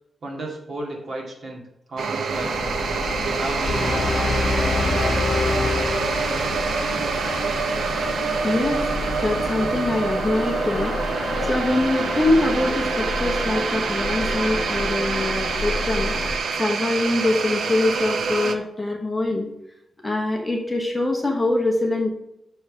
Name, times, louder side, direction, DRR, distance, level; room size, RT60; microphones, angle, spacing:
voice 1, 0.2-1.6 1.9-2.8 3.2-5.2, right 2 dB, 50° right, -1 dB, 2.0 m, -34 dB
sound 1, 2.0-18.5, right 5 dB, 75° right, 0.7 m, -26 dB
sound 2, 2.3-16.4, left 3 dB, 60° left, 0.6 m, -31 dB
sound 3, 3.6-6.8, left 2 dB, 30° left, 1.8 m, -25 dB
voice 2, 8.4-8.9 9.2-10.9 11.4-16.1 16.6-19.5 20.0-22.1, left 2 dB, 10° left, 0 dB, 1.1 m, -23 dB
6.3 x 4.9 x 6.2 m, 0.84 s
wide cardioid pair, 175°, 0 cm